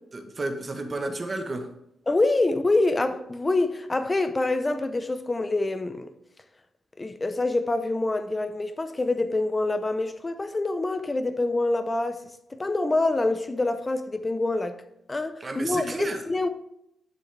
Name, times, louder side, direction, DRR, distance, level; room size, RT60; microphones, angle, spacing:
voice 1, 0.1-1.7 15.4-16.2, right 2 dB, 30° right, 1.1 m, -31 dB
voice 2, 2.1-6.1 7.0-12.2 12.5-14.8 15.1-16.5, left 2 dB, 20° left, 0.7 m, -26 dB
10.5 x 6.2 x 3.4 m
wide cardioid pair, 135°, 0 cm